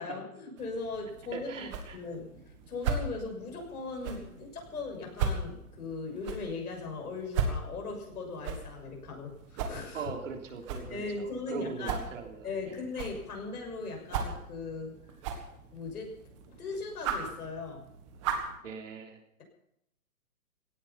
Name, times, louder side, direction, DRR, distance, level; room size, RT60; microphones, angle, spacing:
voice 1, 0.0-10.1 10.8-12.0 12.4-14.9 15.7-16.2 16.5-17.8, left 3 dB, 80° left, 2 dB, 6.5 m, -39 dB
sound 1, 0.6-18.6, right 5 dB, 20° right, 1.6 m, -38 dB
voice 2, 1.3-2.0 9.9-12.8 18.6-19.2, right 5 dB, 55° right, 3 dB, 3.4 m, -40 dB
17.5 x 14.5 x 5.7 m, 0.78 s
hypercardioid pair, 170°, 44 cm